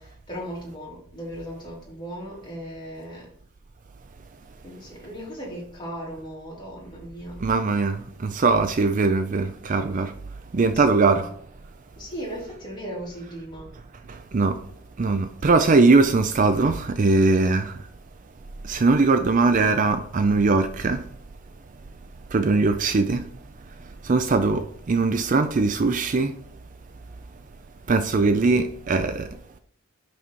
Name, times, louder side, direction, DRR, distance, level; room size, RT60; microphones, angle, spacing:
voice 1, 0.0-3.3 4.6-7.4 10.7-11.3 12.0-13.7, equal, 20° left, 3.4 m, -37 dB
voice 2, 7.4-10.1 10.5-11.3 14.1-14.6 15.0-17.8 18.6-21.1 22.3-23.3 24.0-26.4 27.9-29.6, right 3 dB, 40° right, 0.4 m, -21 dB
6.0 x 5.6 x 4.6 m
head